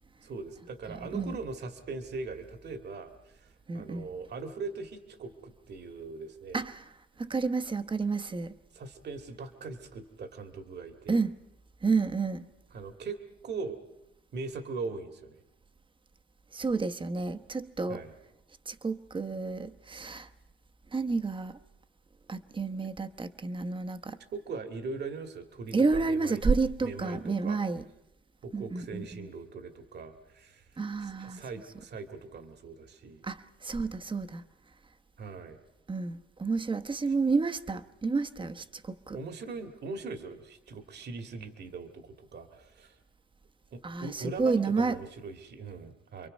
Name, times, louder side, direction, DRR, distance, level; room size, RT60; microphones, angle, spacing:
voice 1, 0.2-6.6 8.7-11.2 12.7-13.8 14.3-15.4 17.9-18.1 24.3-26.4 26.8-27.6 28.4-33.2 35.2-35.6 37.1-37.2 39.1-43.0 43.7-46.3, right 4 dB, 60° right, 2.1 m, -40 dB
voice 2, 0.9-1.4 3.7-4.1 6.5-6.8 7.2-8.5 11.1-11.4 11.8-12.4 16.5-18.0 18.7-20.3 20.9-21.6 22.3-24.2 25.7-27.8 28.5-29.3 30.8-31.4 33.2-34.4 35.9-39.2 43.8-45.0, right 4 dB, 25° right, 1.1 m, -30 dB
29.5 x 23.0 x 5.4 m
cardioid pair, 90°, 20 cm